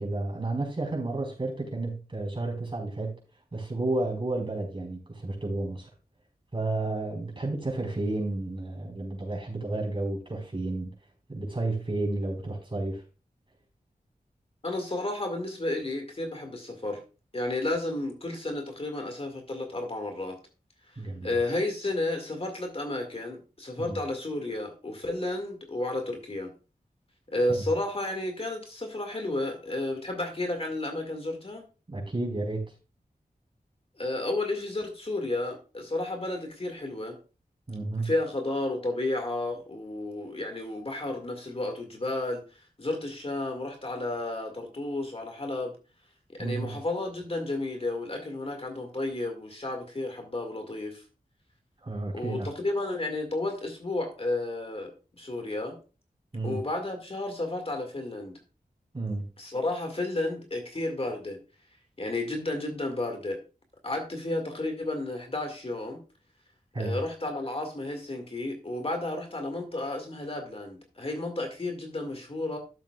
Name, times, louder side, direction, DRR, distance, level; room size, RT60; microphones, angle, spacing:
voice 1, 0.0-3.2 3.5-5.9 6.5-10.9 11.3-13.0 21.0-21.4 23.8-24.0 31.9-32.7 37.7-38.1 46.4-46.8 51.8-52.5 56.3-56.6 58.9-59.2 66.7-67.0, right 2 dB, 35° right, 0 dB, 4.5 m, -31 dB
voice 2, 14.6-17.0 17.3-20.4 21.2-26.5 27.3-31.6 34.0-37.2 38.0-42.4 42.8-45.7 46.3-51.0 52.1-55.8 56.4-58.4 59.4-61.4 62.0-63.4 63.8-66.0 66.8-72.6, left 2 dB, 40° left, 4 dB, 1.9 m, -32 dB
13.0 x 7.3 x 2.3 m, 0.33 s
wide cardioid pair, 85°, 15 cm